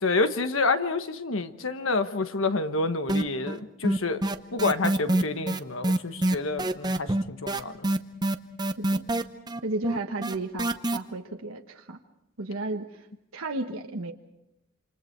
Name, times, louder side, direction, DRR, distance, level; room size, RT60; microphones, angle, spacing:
voice 1, 0.0-4.2 4.5-7.9, left 3 dB, 70° left, 9 dB, 1.3 m, -28 dB
sound 1, 3.1-3.6 3.8-11.0, right 1 dB, 20° right, 0.8 m, -25 dB
voice 2, 9.6-12.0 12.4-13.0 13.3-14.1, right 2 dB, 80° right, 3 dB, 1.3 m, -33 dB
28.5 x 26.5 x 4.6 m, 0.85 s
head